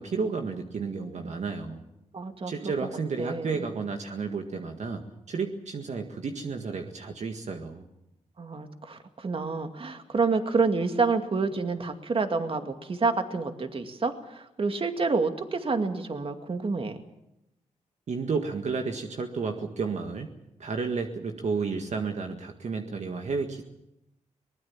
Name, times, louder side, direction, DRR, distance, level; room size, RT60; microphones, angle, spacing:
voice 1, 0.0-1.8 2.5-7.9 18.1-20.3 20.6-23.6, right 4 dB, 60° right, 4 dB, 1.9 m, -32 dB
voice 2, 2.1-2.7 3.2-3.7 8.4-17.0, right 4 dB, 45° right, 6 dB, 2.3 m, -28 dB
23.0 x 20.0 x 7.4 m, 0.87 s
cardioid pair, 85°, 13 cm